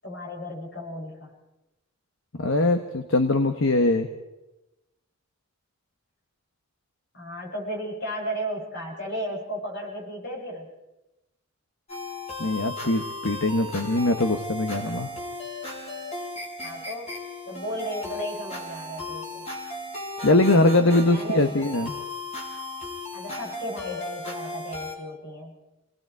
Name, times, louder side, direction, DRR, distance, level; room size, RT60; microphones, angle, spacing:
voice 1, 0.0-1.3 7.1-10.7 16.6-17.2 17.5-19.5 21.0-21.6 23.1-25.6, equal, 50° left, -2 dB, 7.2 m, -34 dB
voice 2, 2.4-4.1 12.4-15.1 20.2-21.9, left 2 dB, 65° left, 7 dB, 1.2 m, -22 dB
sound 1, 11.9-24.9, left 1 dB, 30° left, 4.6 m, -36 dB
29.5 x 19.5 x 4.7 m, 0.99 s
head